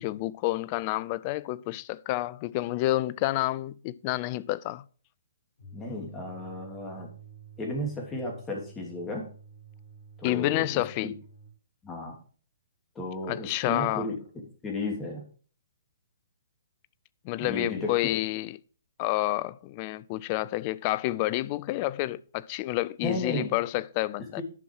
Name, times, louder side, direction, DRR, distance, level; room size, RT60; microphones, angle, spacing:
voice 1, 0.0-4.8 10.2-11.1 13.3-14.1 17.2-18.6 19.0-24.4, left 17 dB, 30° left, 0.4 m, -29 dB
sound 1, 5.6-11.6, right 4 dB, 55° left, 2.4 m, -50 dB
voice 2, 5.7-7.1 7.6-9.3 10.2-11.1 11.8-12.1 12.9-14.2 14.6-15.2 17.4-17.9 23.0-23.5 24.4-24.5, left 1 dB, 15° left, 3.0 m, -34 dB
10.5 x 6.2 x 4.8 m
figure-of-eight pair, 125°, 0 cm